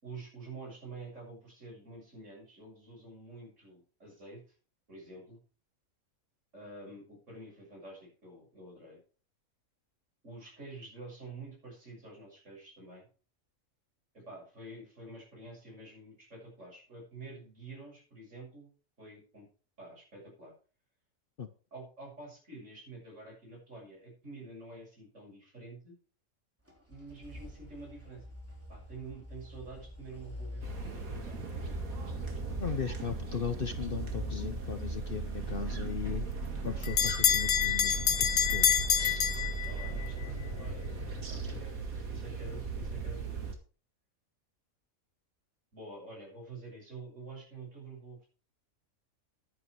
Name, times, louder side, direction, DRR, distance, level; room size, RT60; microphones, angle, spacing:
voice 1, 0.0-4.4 4.9-5.4 6.5-9.0 10.2-13.1 14.1-18.7 19.0-19.5 19.8-20.5 21.7-26.0 26.9-28.2 28.7-31.8 39.7-40.8 41.3-41.7 42.1-43.4 45.7-48.3, right 3 dB, 60° right, -1 dB, 7.2 m, -48 dB
sound 1, 26.7-37.5, equal, 10° right, 3.5 m, -45 dB
sound 2, 30.6-43.5, right 4 dB, 90° right, 2.4 m, -37 dB
voice 2, 32.6-36.3 36.6-38.7, left 7 dB, 50° left, 10 dB, 0.9 m, -37 dB
Bell, 36.0-40.1, left 9 dB, 70° left, 1.3 m, -28 dB
11.0 x 9.5 x 4.7 m, 0.38 s
omnidirectional pair, 1.4 m